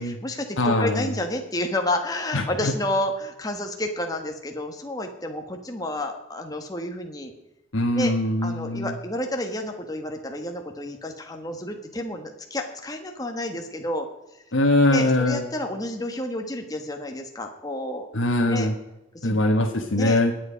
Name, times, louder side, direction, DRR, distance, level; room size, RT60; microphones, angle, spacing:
voice 1, 0.0-7.3 7.9-8.1 8.4-14.1 14.9-18.1 18.5-18.7 19.2-19.4 19.9-20.2, left 1 dB, 20° left, 4 dB, 1.3 m, -30 dB
voice 2, 0.6-1.1 2.3-2.7 7.7-8.9 14.5-15.4 18.1-18.7 19.2-20.3, left 1 dB, 85° left, 1 dB, 1.4 m, -22 dB
20.0 x 7.9 x 5.1 m, 0.96 s
head